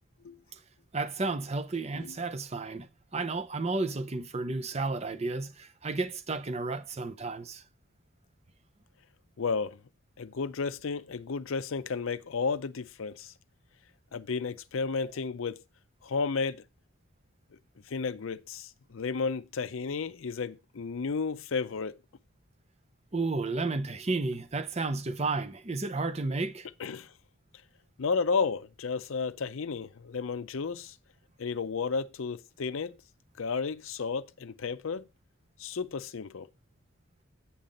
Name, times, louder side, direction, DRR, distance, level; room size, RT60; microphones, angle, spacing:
voice 1, 0.9-7.6 23.1-26.7, right 3 dB, 30° right, 0.7 m, -32 dB
voice 2, 9.4-9.8 10.2-13.3 14.1-15.6 16.0-16.6 17.9-22.0 26.8-27.1 28.0-30.9 31.4-33.0 33.4-35.1 35.6-36.5, left 5 dB, 65° left, 0.5 m, -32 dB
8.5 x 5.8 x 5.1 m
head